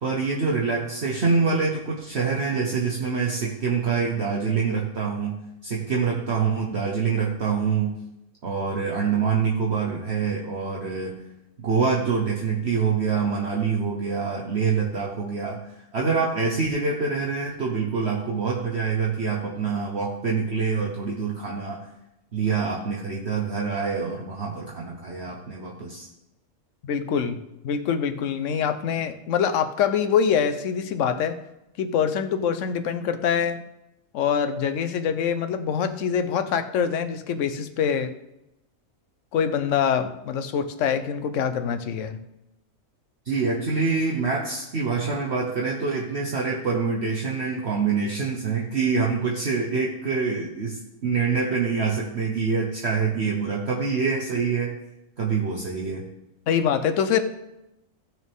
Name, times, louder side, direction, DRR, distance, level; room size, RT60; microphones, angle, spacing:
voice 1, 0.0-8.0 8.4-11.2 11.6-15.6 15.9-21.8 22.3-26.1 43.3-54.7 55.2-56.0, right 5 dB, 50° right, -2 dB, 1.3 m, -25 dB
voice 2, 26.8-31.4 31.8-33.6 34.1-38.1 39.3-42.2 56.5-57.2, left 7 dB, 65° left, 9 dB, 1.1 m, -24 dB
15.5 x 6.2 x 3.6 m, 0.89 s
omnidirectional pair, 1.4 m